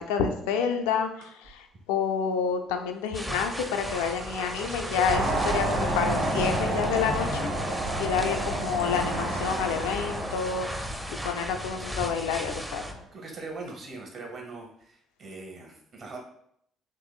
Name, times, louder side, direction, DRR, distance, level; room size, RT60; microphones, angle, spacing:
voice 1, 0.0-7.5 8.0-10.7 11.2-12.8, left 6 dB, 70° left, 5 dB, 0.3 m, -29 dB
sound 1, 1.2-1.6 3.1-11.0 11.3-11.9 12.2-12.6 13.2-13.3 13.7-13.8, right 3 dB, 70° right, 0.5 m, -46 dB
sound 2, 3.1-12.9, equal, 5° right, 0.5 m, -37 dB
sound 3, 5.1-13.0, right 1 dB, 90° right, 1.3 m, -30 dB
voice 2, 13.1-16.2, right 3 dB, 50° right, 1 dB, 0.9 m, -41 dB
3.8 x 3.0 x 2.3 m, 0.71 s
figure-of-eight pair, 50°, 0 cm